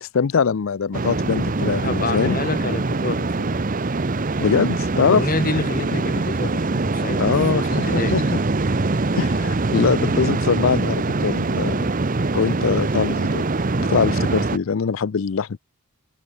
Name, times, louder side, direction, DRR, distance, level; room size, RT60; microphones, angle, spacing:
voice 1, 0.0-2.4 4.4-5.2 7.2-8.4 9.1-11.8 12.3-13.5 13.8-15.6, left 6 dB, 65° left, 0.5 m, -22 dB
sound 1, 0.9-14.6, right 3 dB, 35° right, 0.7 m, -23 dB
voice 2, 1.8-3.6 5.0-8.2, left 2 dB, 40° left, 1.8 m, -28 dB
head